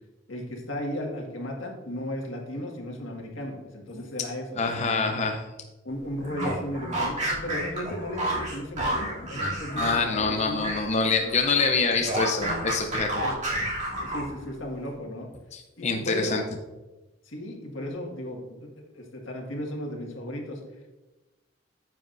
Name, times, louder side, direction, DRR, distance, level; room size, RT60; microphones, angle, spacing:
voice 1, 0.3-5.1 5.8-10.7 13.2-13.4 14.0-15.3 15.8-16.4 17.2-18.7 18.9-20.6, left 1 dB, 85° left, 0 dB, 1.7 m, -35 dB
voice 2, 4.6-5.4 9.7-13.2 15.5-16.4, left 4 dB, 35° left, 3 dB, 0.6 m, -26 dB
sound 1, 6.2-10.9 11.2-14.5, right 1 dB, 40° right, 2.8 m, -30 dB
9.5 x 7.6 x 2.6 m, 1.1 s
head